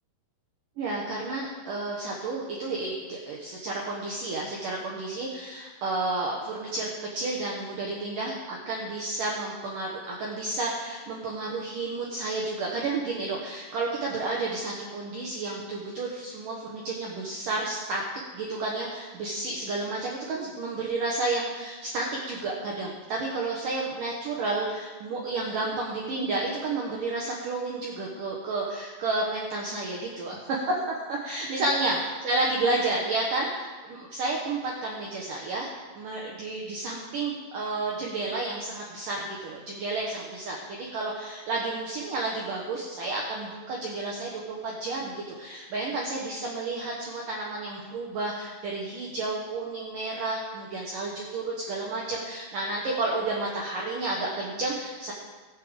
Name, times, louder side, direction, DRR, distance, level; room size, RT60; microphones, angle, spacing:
voice 1, 0.8-18.0 18.3-32.0 32.2-55.1, right 2 dB, 80° right, -3 dB, 1.9 m, -31 dB
21.0 x 7.6 x 3.6 m, 1.3 s
omnidirectional pair, 5.7 m